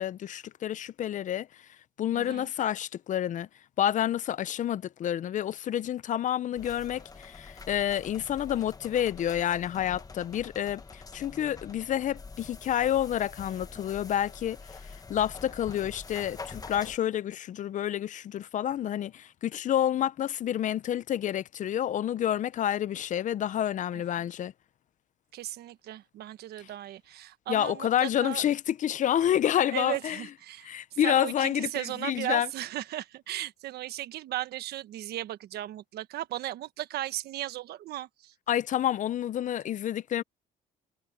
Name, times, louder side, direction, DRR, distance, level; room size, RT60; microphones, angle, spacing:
voice 1, 0.0-1.5 2.0-3.5 3.8-14.6 15.1-24.5 27.5-30.2 30.6-32.5 38.5-40.2, left 10 dB, 50° left, 0.6 m, -29 dB
voice 2, 2.1-2.5 23.9-24.3 25.3-28.4 29.7-38.3, right 14 dB, 70° right, 1.3 m, -36 dB
sound 1, 6.5-17.0, left 4 dB, 20° left, 1.3 m, -46 dB
cardioid pair, 110°, 17 cm